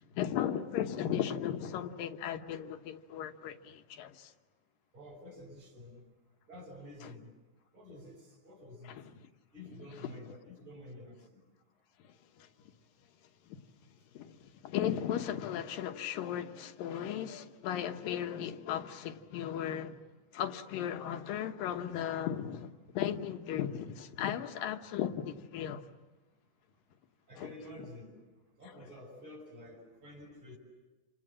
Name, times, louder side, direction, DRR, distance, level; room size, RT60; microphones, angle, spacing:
voice 1, 0.0-4.3 7.0-7.1 8.9-9.1 10.0-10.1 12.4-12.5 14.1-20.0 20.3-25.8 27.4-27.5, left 10 dB, 85° left, 2.9 m, -36 dB
voice 2, 4.9-6.0 6.5-7.3 7.7-8.2 8.4-9.0 9.5-11.2 27.3-28.2 28.6-30.6, left 1 dB, 15° right, 6.5 m, -49 dB
28.5 x 27.5 x 7.6 m
omnidirectional pair, 3.9 m